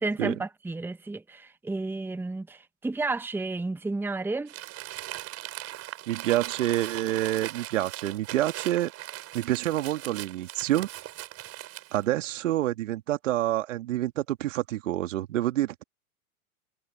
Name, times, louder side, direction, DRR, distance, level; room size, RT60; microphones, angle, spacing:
voice 1, 0.0-4.5, right 3 dB, 5° right, 1.3 m, -32 dB
Crumpling crinkling, 4.5-12.1, right 15 dB, 35° right, 7.9 m, -39 dB
voice 2, 6.1-8.9 9.3-10.9 11.9-15.8, right 14 dB, 60° right, 2.3 m, -27 dB
figure-of-eight pair, 100°, 42 cm